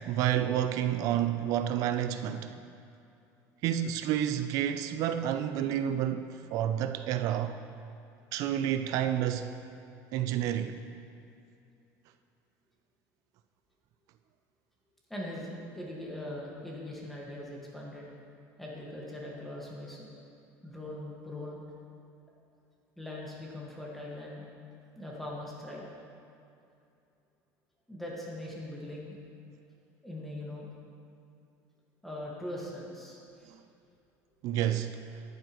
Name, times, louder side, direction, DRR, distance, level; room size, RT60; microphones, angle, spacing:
voice 1, 0.1-2.6 3.6-7.6 8.3-9.5 10.1-10.8 34.4-35.0, right 10 dB, 55° right, 0.4 m, -29 dB
voice 2, 15.1-18.0 18.6-20.2 20.6-21.6 23.0-24.4 24.9-25.9 27.9-29.2 30.0-30.7 32.0-33.5, left 1 dB, 5° left, 1.6 m, -41 dB
10.5 x 9.2 x 3.0 m
cardioid pair, 155°, 7 cm